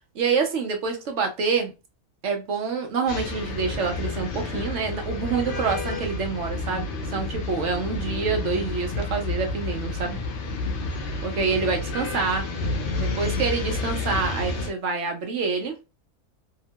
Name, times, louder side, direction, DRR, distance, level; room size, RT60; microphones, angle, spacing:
voice 1, 0.1-1.7 2.2-10.2 11.2-12.4 13.0-15.7, right 5 dB, 60° right, 4 dB, 0.9 m, -27 dB
sound 1, 3.1-14.7, left 2 dB, 75° left, 0.5 m, -30 dB
2.9 x 2.1 x 2.7 m, 0.28 s
omnidirectional pair, 1.6 m